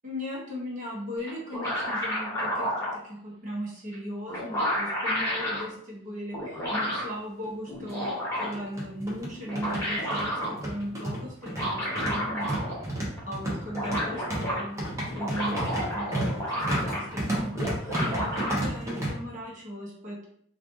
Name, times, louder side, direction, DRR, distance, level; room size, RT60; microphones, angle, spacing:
voice 1, 0.0-12.8 13.3-14.8 15.1-20.3, equal, 40° right, -5 dB, 1.1 m, -37 dB
sound 1, 1.3-3.0 3.9-4.0 4.3-5.6 6.3-7.1 7.7-8.7 9.3-10.5 11.4-12.9 13.2-13.3 13.5-14.6 15.0-17.2 17.5-18.5, equal, 15° left, 1.2 m, -31 dB
sound 2, 7.1-7.2 7.4-7.5 8.4-19.1, right 1 dB, 15° right, 0.8 m, -32 dB
3.2 x 2.5 x 3.7 m, 0.67 s
head